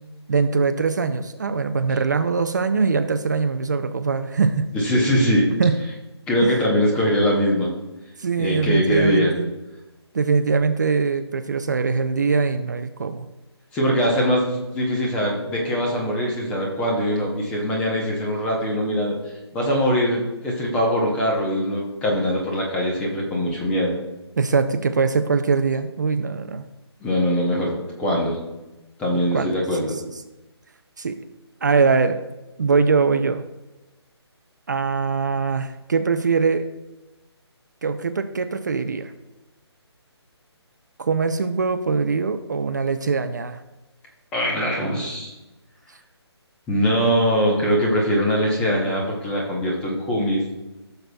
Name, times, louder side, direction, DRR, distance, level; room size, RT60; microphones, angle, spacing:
voice 1, 0.3-4.7 5.6-5.8 6.4-6.5 8.2-9.5 10.1-13.3 24.4-26.6 29.3-29.5 29.8-30.1 31.0-31.2 31.6-32.2 32.6-33.4 34.7-36.7 37.8-39.1 41.0-43.6, right 5 dB, 40° right, 9 dB, 0.4 m, -22 dB
voice 2, 4.7-5.5 6.3-7.7 8.4-9.3 13.7-19.2 19.5-24.0 27.0-28.4 29.0-30.0 44.3-45.3 46.7-50.4, equal, 5° left, -1 dB, 0.7 m, -22 dB
15.0 x 6.7 x 2.3 m, 1.0 s
hypercardioid pair, 170°, 14 cm